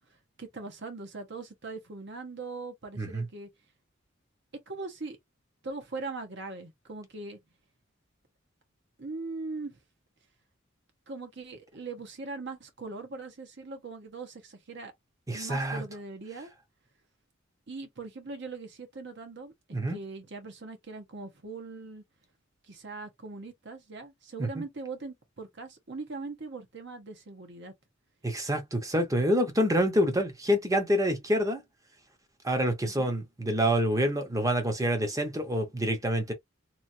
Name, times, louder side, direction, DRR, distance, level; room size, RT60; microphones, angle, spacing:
voice 1, 0.4-3.5 4.7-5.2 5.6-7.4 9.0-9.8 11.1-14.9 15.3-16.5 17.7-19.5 19.9-22.0 22.7-27.7 32.8-33.1, right 3 dB, 60° right, 1.0 m, -40 dB
voice 2, 15.3-15.8 19.7-20.0 24.4-24.6 28.2-31.6 32.4-36.3, equal, 15° right, 0.8 m, -27 dB
3.0 x 2.5 x 2.6 m
head